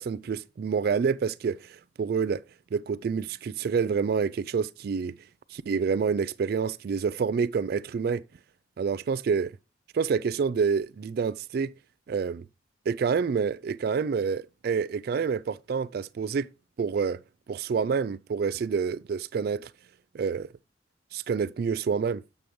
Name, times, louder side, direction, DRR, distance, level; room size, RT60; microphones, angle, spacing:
voice 1, 0.0-2.4 2.7-5.2 5.5-8.2 8.8-9.5 9.9-11.7 12.1-12.4 12.9-16.5 16.8-17.2 17.5-19.7 20.1-20.5 21.1-22.2, right 6 dB, 60° right, 0.3 m, -28 dB
8.5 x 6.4 x 3.1 m
head